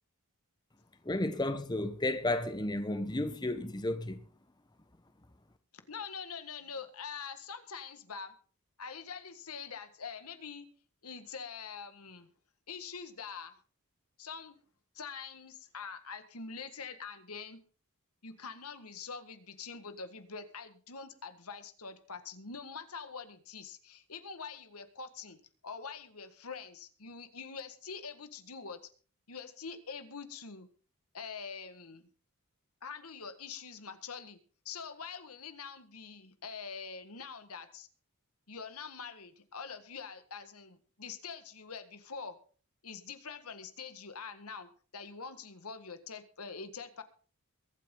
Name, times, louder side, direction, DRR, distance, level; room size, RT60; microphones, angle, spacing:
voice 1, 1.0-4.2, left 1 dB, 20° left, 1.1 m, -32 dB
voice 2, 5.9-8.3 8.8-10.7 11.0-12.3 12.7-13.6 14.2-14.6 15.0-17.6 18.2-28.8 29.3-30.7 31.1-32.1 32.8-34.4 34.7-37.9 38.5-42.4 42.8-47.0, left 5 dB, 85° left, 1.7 m, -44 dB
22.5 x 9.1 x 3.9 m
head